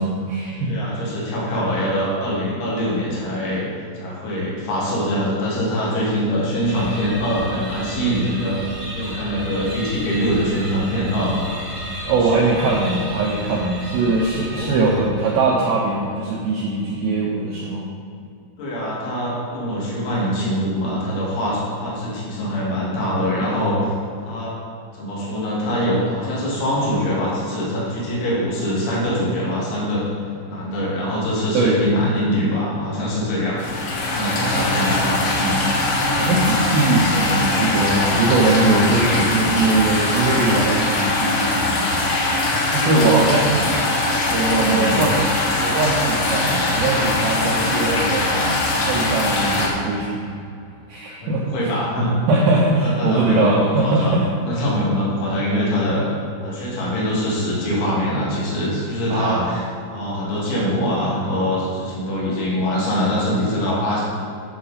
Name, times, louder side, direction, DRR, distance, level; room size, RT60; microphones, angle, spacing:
voice 1, 0.0-0.8 12.1-17.9 31.5-31.9 34.2-34.9 36.2-42.0 42.7-43.5 44.3-45.2 45.6-48.6 48.9-50.3 50.9-51.7 52.3-54.3 59.1-59.6, right 3 dB, 80° right, -2 dB, 2.2 m, -21 dB
voice 2, 0.7-3.6 4.0-8.6 8.9-11.5 12.0-12.3 14.4-14.9 18.6-23.9 24.2-24.5 24.9-30.1 30.5-35.7 42.8-43.6 44.6-45.1 51.2-52.1 52.8-56.0 56.4-59.6 59.9-64.0, equal, 85° left, -6 dB, 4.7 m, -23 dB
sound 1, 6.6-15.3, right 1 dB, 55° right, 0.9 m, -34 dB
sound 2, 33.6-49.7, left 2 dB, 60° left, 2.8 m, -21 dB
11.0 x 6.9 x 4.2 m, 2.5 s
omnidirectional pair, 5.3 m